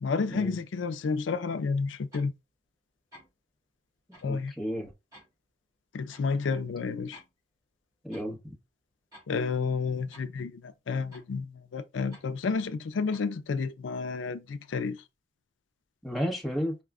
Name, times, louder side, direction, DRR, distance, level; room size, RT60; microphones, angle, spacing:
voice 1, 0.0-2.3 4.2-4.5 5.9-7.2 9.3-15.0, left 4 dB, 80° left, 0.4 m, -31 dB
sound 1, 2.1-2.3 3.1-3.4 4.1-4.3 5.1-5.3 6.1-6.3 7.1-7.3 8.1-8.3 9.1-9.3 10.1-10.3 11.1-11.3 12.1-12.3 13.1-13.3, equal, 20° right, 2.5 m, -53 dB
voice 2, 4.2-4.9 8.0-8.5 16.0-16.8, equal, ahead, 1.1 m, -32 dB
4.7 x 2.2 x 3.6 m
head